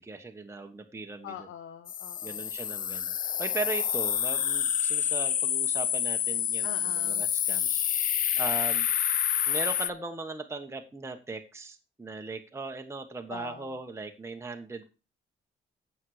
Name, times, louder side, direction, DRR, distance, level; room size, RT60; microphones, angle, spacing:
voice 1, 0.0-1.3 2.2-8.9 9.5-14.8, right 3 dB, 15° right, 4 dB, 1.2 m, -38 dB
voice 2, 1.2-2.5 6.6-7.2 13.3-13.8, left 9 dB, 85° left, 9 dB, 1.0 m, -44 dB
sound 1, 1.9-9.9, left 9 dB, 45° left, 0.5 m, -28 dB
9.0 x 7.8 x 4.9 m, 0.31 s
cardioid pair, 90°, 20 cm